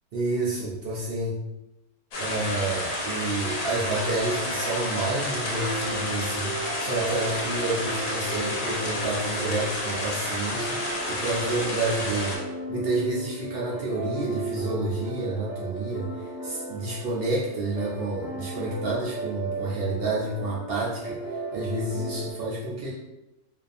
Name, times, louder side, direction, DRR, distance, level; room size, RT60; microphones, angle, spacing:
voice 1, 0.1-1.4 2.2-12.4 12.7-21.2 21.5-22.9, right 2 dB, 70° right, -5 dB, 0.5 m, -29 dB
sound 1, 2.1-12.4, left 1 dB, 75° left, 1.1 m, -30 dB
sound 2, 4.0-22.3, right 2 dB, 55° left, 0.8 m, -36 dB
2.6 x 2.3 x 2.5 m, 0.96 s
omnidirectional pair, 1.5 m